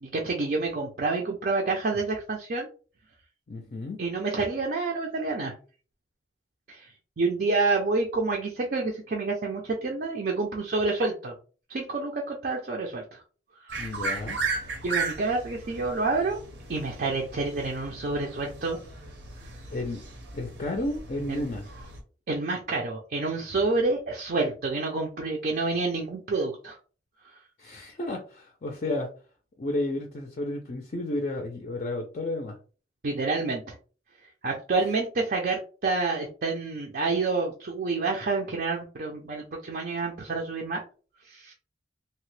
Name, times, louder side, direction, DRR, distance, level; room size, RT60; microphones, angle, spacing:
voice 1, 0.0-2.7 4.0-5.5 6.7-6.9 7.2-11.3 11.7-13.2 13.6-13.7 14.8-16.4 16.7-18.8 21.3-21.4 22.3-26.8 33.0-33.7 34.4-40.8 41.2-41.5, right 3 dB, 50° right, 0 dB, 0.4 m, -28 dB
voice 2, 3.5-4.0 13.8-14.4 19.7-20.0 20.3-21.6 27.6-29.1 29.6-32.6 34.8-34.9, left 2 dB, 40° left, 3 dB, 0.4 m, -32 dB
sound 1, 13.7-22.0, right 3 dB, 80° right, 0.8 m, -36 dB
2.8 x 2.1 x 3.1 m, 0.38 s
head